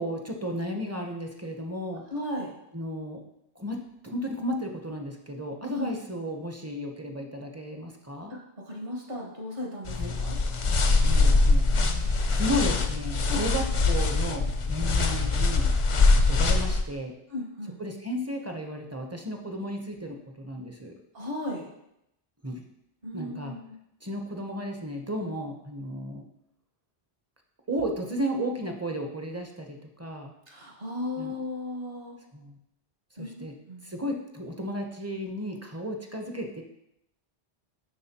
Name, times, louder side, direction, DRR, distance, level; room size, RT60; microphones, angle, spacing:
voice 1, 0.0-2.0 2.7-3.2 3.6-8.3 10.0-10.1 11.0-11.7 12.3-15.7 16.3-17.1 17.8-20.9 22.4-22.6 23.1-23.5 24.0-26.2 27.7-30.3 31.2-31.3 32.3-32.6 33.2-33.6 33.8-36.6, equal, 20° right, 2 dB, 0.5 m, -34 dB
voice 2, 2.1-2.5 5.7-5.9 8.7-10.4 13.3-13.4 17.3-17.8 21.1-21.7 23.0-23.7 30.5-32.2 33.2-33.8, left 1 dB, 60° right, -2 dB, 1.7 m, -35 dB
sound 1, 9.9-16.8, left 3 dB, 50° left, 0.3 m, -23 dB
11.0 x 3.9 x 2.8 m, 0.82 s
omnidirectional pair, 1.1 m